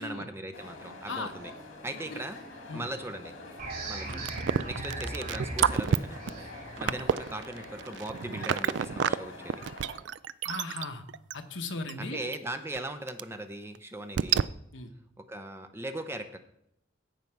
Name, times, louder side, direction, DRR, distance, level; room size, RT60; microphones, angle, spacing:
voice 1, 0.0-1.5 1.8-2.4 2.7-3.3 3.9-6.5 6.8-9.6 12.0-14.5 15.2-16.4, right 1 dB, 10° right, 8 dB, 0.6 m, -39 dB
sound 1, 0.5-10.0, left 2 dB, 85° left, 2.1 m, -46 dB
sound 2, 3.6-8.9, right 2 dB, 45° right, 3.7 m, -40 dB
sound 3, 4.1-9.1 9.5-11.3 11.9-12.0 12.3-12.4 12.8-12.9 13.1-13.2 13.7-13.8 14.2-14.4, right 8 dB, 60° right, 0.3 m, -28 dB
voice 2, 10.5-11.0 11.3-12.3 14.7-14.9, left 3 dB, 65° left, 6 dB, 1.1 m, -37 dB
16.0 x 5.5 x 4.6 m, 0.78 s
head